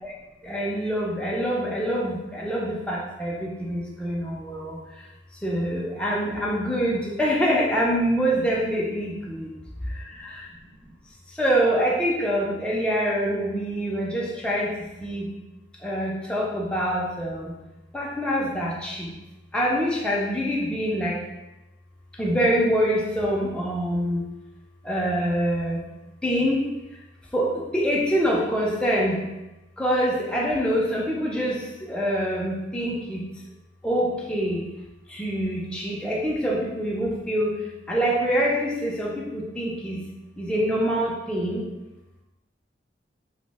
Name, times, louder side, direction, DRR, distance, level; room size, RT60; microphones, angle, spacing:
voice 1, 0.4-4.8 5.4-9.5 11.4-14.7 15.0-15.3 15.8-17.5 17.9-19.1 19.5-21.2 22.2-24.2 24.8-25.8 26.2-26.7 27.3-29.2 29.8-31.6 31.9-33.2 33.8-34.7 35.1-37.5 37.9-40.0 40.4-41.6, equal, 5° left, -4 dB, 0.4 m, -25 dB
2.9 x 2.0 x 3.3 m, 1.0 s
head